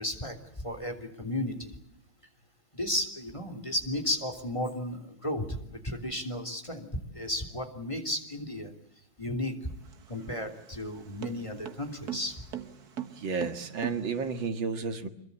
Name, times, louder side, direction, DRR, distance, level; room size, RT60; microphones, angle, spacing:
voice 1, 0.0-1.7 2.7-6.9 7.1-8.7 9.2-9.8 10.1-12.3, left 1 dB, 15° left, 7 dB, 3.3 m, -34 dB
sound 1, 9.7-14.5, right 10 dB, 55° right, 1.9 m, -41 dB
voice 2, 13.2-15.1, right 5 dB, 80° right, 8 dB, 2.5 m, -32 dB
25.5 x 23.0 x 8.3 m, 0.76 s
omnidirectional pair, 2.1 m